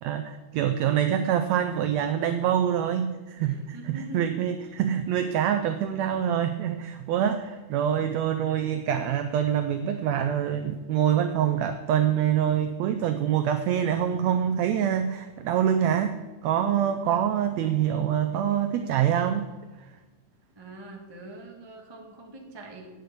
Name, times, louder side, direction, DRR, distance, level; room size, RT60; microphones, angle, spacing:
voice 1, 0.0-16.2 16.4-19.5, right 9 dB, 90° right, 8 dB, 1.5 m, -25 dB
voice 2, 3.4-4.4 20.5-22.9, right 1 dB, 40° right, 0 dB, 0.3 m, -43 dB
9.1 x 6.6 x 8.1 m, 1.2 s
omnidirectional pair, 3.7 m